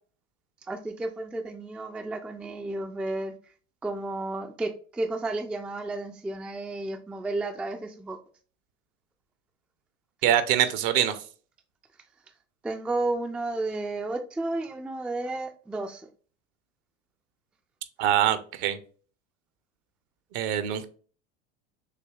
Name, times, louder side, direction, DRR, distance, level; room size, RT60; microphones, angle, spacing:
voice 1, 0.7-3.3 3.8-8.2 12.6-16.1, right 2 dB, 5° right, 0.3 m, -32 dB
voice 2, 10.2-11.2 18.0-18.8 20.3-20.8, right 11 dB, 55° right, 0.7 m, -24 dB
6.7 x 2.7 x 2.4 m
hypercardioid pair, 80°, 35 cm